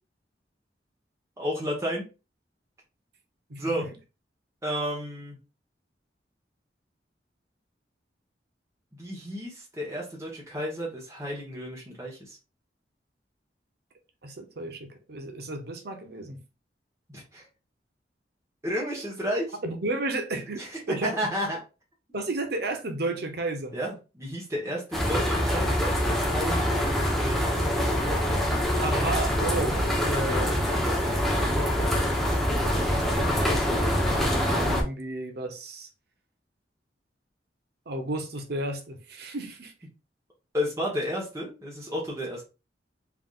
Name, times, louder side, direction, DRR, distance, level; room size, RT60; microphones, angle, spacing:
voice 1, 1.4-2.0 3.6-3.9 4.6-5.4 8.9-12.4 17.1-17.5 18.6-19.6 20.6-21.6 23.7-27.4 40.5-42.4, equal, 15° right, 1.0 m, -32 dB
voice 2, 3.5-3.9 14.2-16.4 19.6-21.1 22.1-23.8 28.8-30.6 34.2-35.9 37.9-39.7, right 2 dB, 60° right, 0.8 m, -32 dB
sound 1, 24.9-34.8, equal, ahead, 0.8 m, -25 dB
3.7 x 3.4 x 2.4 m
head